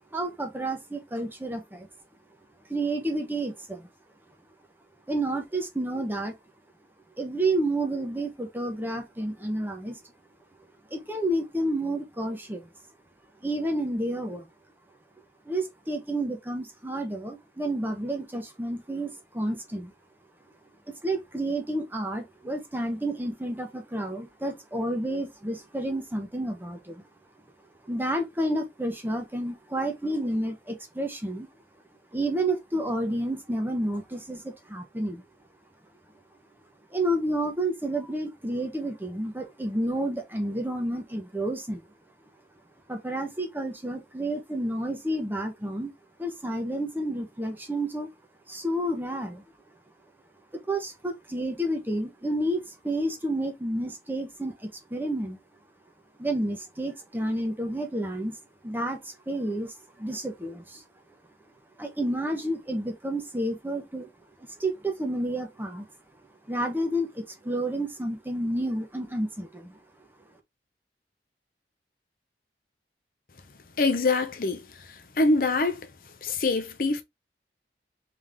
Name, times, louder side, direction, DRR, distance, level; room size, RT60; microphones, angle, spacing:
voice 1, 0.1-1.9 2.7-3.9 5.1-6.3 7.2-10.0 10.9-12.7 13.4-14.5 15.4-19.9 21.0-27.0 27.9-31.5 32.1-35.2 36.9-41.8 42.9-45.9 46.2-48.1 48.5-49.4 50.7-55.4 56.2-58.4 58.6-60.8 61.8-64.1 64.6-65.9 66.5-69.8, right 1 dB, 10° right, 0.9 m, -30 dB
voice 2, 73.8-74.6 75.2-75.8 76.2-77.0, left 3 dB, 55° left, 0.6 m, -24 dB
3.5 x 3.4 x 3.5 m
head